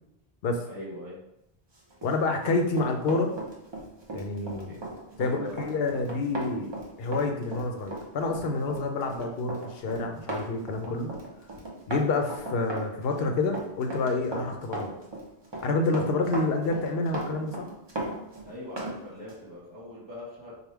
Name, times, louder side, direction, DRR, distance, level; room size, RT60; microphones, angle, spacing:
voice 1, 0.6-1.2 4.7-4.8 5.2-6.0 18.4-20.5, left 1 dB, 20° left, -10 dB, 1.0 m, -41 dB
Run, 1.9-19.0 19.3-19.4, right 1 dB, 30° right, 0.7 m, -37 dB
voice 2, 2.0-3.3 4.1-4.8 5.2-6.7 7.0-11.1 11.9-14.9 15.6-17.7, left 3 dB, 70° left, 4 dB, 0.8 m, -28 dB
3.5 x 2.3 x 4.4 m, 0.82 s
omnidirectional pair, 1.1 m